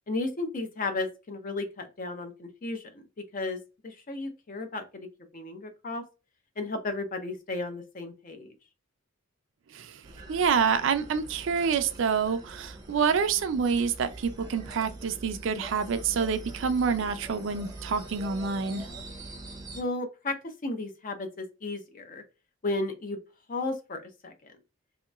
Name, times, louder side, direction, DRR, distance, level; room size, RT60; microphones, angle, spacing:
voice 1, 0.1-3.0 3.3-5.1 5.3-6.0 6.6-8.5 19.7-22.2 22.6-23.2 23.5-24.3, left 2 dB, 40° left, 0.6 m, -34 dB
sound 1, 10.0-19.8, right 2 dB, 20° right, 0.6 m, -44 dB
voice 2, 10.3-18.9, right 6 dB, 65° right, 0.4 m, -27 dB
3.0 x 2.8 x 2.3 m
head